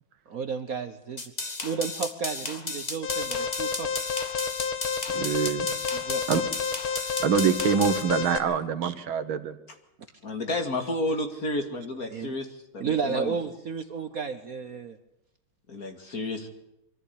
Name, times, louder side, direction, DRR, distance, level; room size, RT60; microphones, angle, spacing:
voice 1, 0.3-1.2 1.6-3.9 5.9-6.4 8.4-8.6 12.1-12.3 12.8-15.0, right 6 dB, 50° right, 9 dB, 1.3 m, -32 dB
sound 1, 1.2-8.0, left 3 dB, 20° left, 1.4 m, -34 dB
Alarm, 3.0-8.4, left 6 dB, 80° left, 2.3 m, -30 dB
voice 2, 5.1-5.7 6.3-6.4 7.2-9.5, right 7 dB, 80° right, 11 dB, 2.1 m, -25 dB
voice 3, 10.2-13.4 15.7-16.5, left 1 dB, 45° left, 5 dB, 2.6 m, -31 dB
23.0 x 14.5 x 8.4 m, 0.83 s
omnidirectional pair, 2.2 m